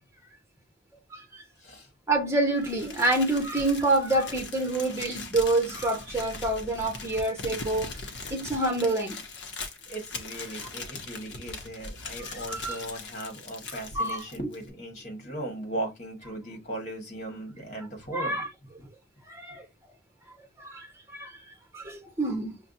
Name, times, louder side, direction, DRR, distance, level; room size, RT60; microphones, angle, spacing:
voice 1, 1.1-1.4 2.1-7.9 8.3-9.2 12.5-12.8 13.9-14.2 18.1-18.5 19.3-19.7 20.6-20.9 21.1-21.4 21.7-22.5, right 2 dB, 15° right, 1.0 m, -27 dB
Crumpling crinkling, 2.6-14.7, left 3 dB, 60° left, 0.8 m, -40 dB
voice 2, 9.9-18.4 18.8-18.9, right 1 dB, 40° left, 1.6 m, -37 dB
5.8 x 2.2 x 2.7 m
head